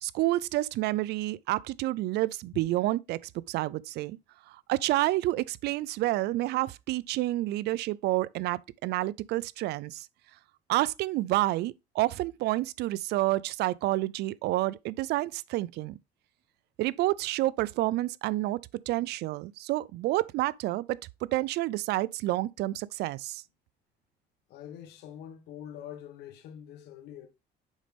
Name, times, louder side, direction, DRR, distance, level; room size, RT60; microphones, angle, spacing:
voice 1, 0.0-3.2 3.5-4.2 4.5-10.1 10.7-16.0 16.8-18.6 18.9-21.0 21.3-23.4, right 17 dB, 75° right, 0.4 m, -29 dB
voice 2, 24.5-27.3, left 10 dB, 80° left, 1.3 m, -45 dB
7.2 x 5.2 x 3.4 m
cardioid pair, 110°, 17 cm